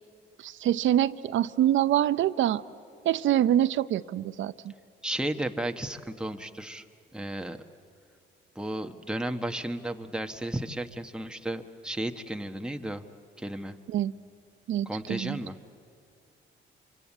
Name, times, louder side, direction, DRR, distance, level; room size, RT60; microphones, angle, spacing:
voice 1, 0.4-2.6 3.0-4.7 13.9-14.1 14.7-15.4, right 12 dB, 75° right, 16 dB, 0.7 m, -25 dB
voice 2, 5.0-6.8 7.1-7.6 8.5-13.0 13.4-13.7 14.8-15.5, right 1 dB, 5° right, 6 dB, 1.2 m, -33 dB
26.0 x 25.5 x 8.5 m, 2.4 s
cardioid pair, 90°, 20 cm